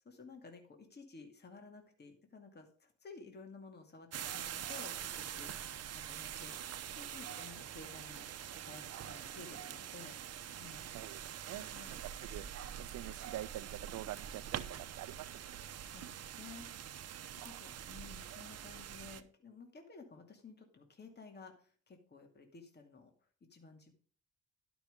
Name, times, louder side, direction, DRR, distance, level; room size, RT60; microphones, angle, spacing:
voice 1, 0.1-6.6 6.9-10.2 10.6-10.9 11.5-12.0 15.6-16.7 17.4-23.1 23.5-23.9, left 4 dB, 35° left, 2.4 m, -54 dB
sound 1, 4.1-19.2, right 10 dB, 55° right, 0.9 m, -45 dB
voice 2, 11.5-12.5 12.8-14.7 15.0-15.3 17.4-17.6, right 15 dB, 70° right, 0.5 m, -46 dB
12.0 x 6.2 x 5.2 m
cardioid pair, 90°, 30 cm